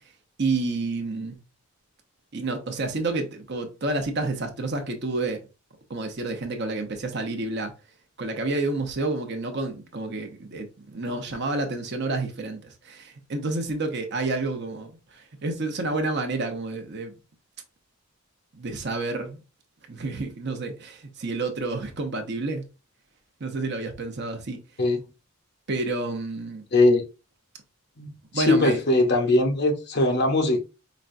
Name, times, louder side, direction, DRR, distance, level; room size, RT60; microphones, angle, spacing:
voice 1, 0.4-1.4 2.3-5.4 5.9-7.7 8.2-17.1 18.5-19.4 19.9-22.6 23.4-24.6 25.7-26.6 28.3-28.8, right 2 dB, 50° right, 0.8 m, -29 dB
voice 2, 26.7-27.0 28.0-30.6, left 2 dB, 50° left, 0.8 m, -21 dB
5.1 x 2.3 x 2.5 m
head